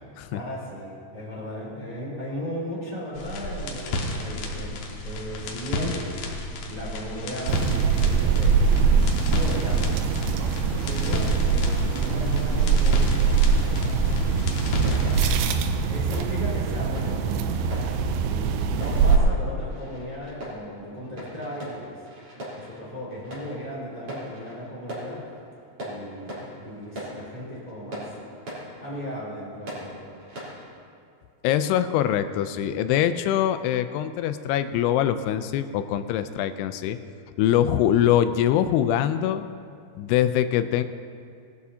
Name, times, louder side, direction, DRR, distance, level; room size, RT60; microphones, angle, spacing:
voice 1, 0.3-6.0 6.3-13.2 13.5-14.0 14.5-14.9 15.9-17.5 18.2-22.0 22.6-25.2 25.8-28.1 28.8-30.1, equal, 10° right, -6 dB, 2.5 m, -36 dB
sound 1, 3.1-15.4, left 2 dB, 70° left, 2.9 m, -33 dB
sound 2, 7.5-19.2, right 5 dB, 80° right, 2.6 m, -22 dB
sound 3, 14.8-30.8, equal, 35° right, 4.6 m, -41 dB
voice 2, 31.4-37.0 37.4-39.4 40.0-40.8, left 10 dB, 90° left, 11 dB, 2.6 m, -23 dB
20.5 x 12.5 x 2.8 m, 2.3 s
omnidirectional pair, 4.6 m